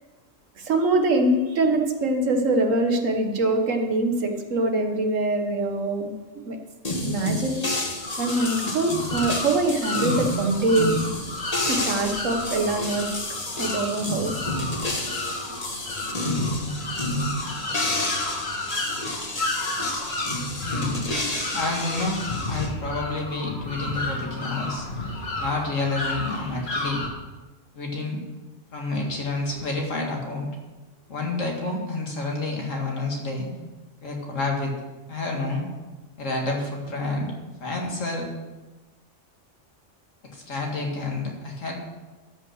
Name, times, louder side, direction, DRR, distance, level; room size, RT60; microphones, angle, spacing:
voice 1, 0.6-6.1 6.4-6.6 6.9-7.7 8.2-10.9 11.7-13.1 13.6-14.3, right 2 dB, 85° right, 4 dB, 1.7 m, -23 dB
sound 1, 6.8-22.7, left 1 dB, 30° left, 1.5 m, -30 dB
sound 2, 8.0-27.1, left 2 dB, 55° left, 1.9 m, -32 dB
voice 2, 20.6-21.0 21.3-24.9 25.4-27.0 27.7-28.2 28.7-30.5 31.1-33.5 34.0-34.7 35.1-35.7 36.2-37.3 37.6-38.3 40.3-41.7, left 2 dB, 85° left, 0 dB, 2.3 m, -29 dB
12.5 x 5.7 x 6.4 m, 1.2 s
omnidirectional pair, 1.3 m